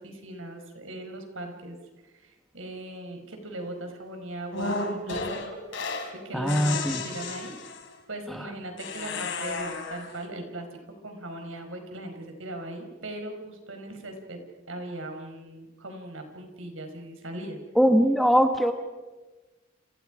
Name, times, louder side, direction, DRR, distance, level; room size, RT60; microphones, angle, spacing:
voice 1, 0.0-1.8 2.1-5.9 6.2-7.5 8.1-10.7 11.0-14.4 14.7-17.6, right 1 dB, 75° right, 5 dB, 5.0 m, -39 dB
sound 1, 4.5-6.1 6.5-7.9 8.8-10.2, left 3 dB, 65° left, 3.5 m, -33 dB
voice 2, 6.3-7.0 17.7-18.7, equal, ahead, 5 dB, 1.4 m, -21 dB
30.0 x 26.5 x 5.1 m, 1.2 s
head